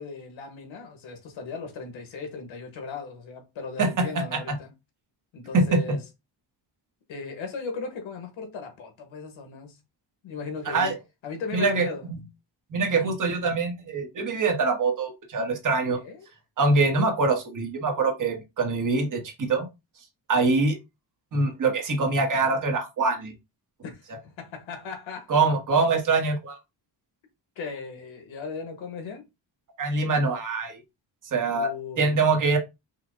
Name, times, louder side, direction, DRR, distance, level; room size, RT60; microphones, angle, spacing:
voice 1, 0.0-4.7 5.3-6.0 7.1-9.8 10.2-10.9 11.2-12.1 15.9-16.3 20.3-20.7 23.8-25.3 27.5-29.2 31.5-32.2, left 5 dB, 90° left, 1.5 m, -37 dB
voice 2, 3.8-4.4 5.5-6.0 10.6-10.9 11.5-12.2 12.7-16.0 16.6-19.7 20.3-20.8 21.3-23.3 25.3-26.6 29.8-30.8 31.3-31.7 32.0-32.6, right 3 dB, 45° right, 1.2 m, -24 dB
5.7 x 2.2 x 3.6 m
wide cardioid pair, 180°, 45 cm